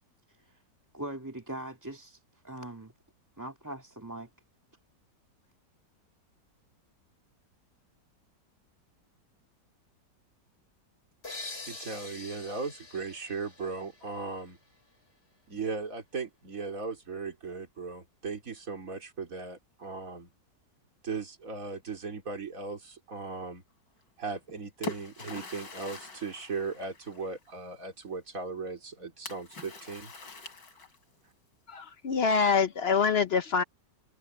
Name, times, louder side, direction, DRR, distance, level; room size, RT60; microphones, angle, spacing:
voice 1, 0.3-0.6 0.9-2.9 3.4-4.3, right 1 dB, 10° right, 2.2 m, -41 dB
sound 1, 11.2-14.8, left 3 dB, 35° left, 5.5 m, -45 dB
voice 2, 11.7-14.6 15.5-20.3 21.0-23.6 24.2-30.1, right 4 dB, 45° right, 3.9 m, -37 dB
Splash splatter, 24.3-27.5 29.3-31.2, left 1 dB, 80° left, 4.6 m, -43 dB
voice 3, 31.7-33.6, left 5 dB, 60° left, 0.6 m, -25 dB
omnidirectional pair, 1.9 m